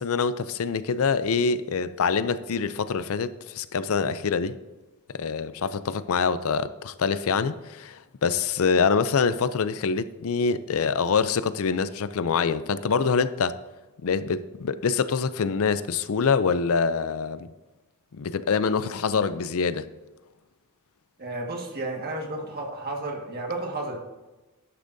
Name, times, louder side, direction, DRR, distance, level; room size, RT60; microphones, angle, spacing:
voice 1, 0.0-4.6 5.1-13.5 14.0-17.5 18.1-19.8, left 5 dB, 65° left, 0.5 m, -25 dB
voice 2, 21.2-24.0, right 2 dB, 45° right, 1.7 m, -32 dB
11.5 x 10.5 x 2.7 m
head